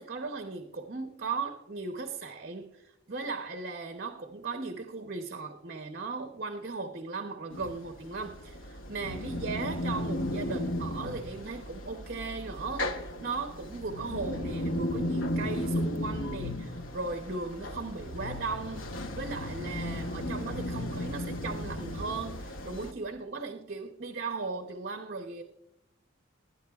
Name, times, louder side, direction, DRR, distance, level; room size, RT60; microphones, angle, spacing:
voice 1, 0.0-25.4, right 4 dB, 45° right, 0.7 m, -37 dB
sound 1, 7.5-22.9, left 1 dB, 75° left, 1.0 m, -35 dB
19.0 x 9.4 x 2.3 m
head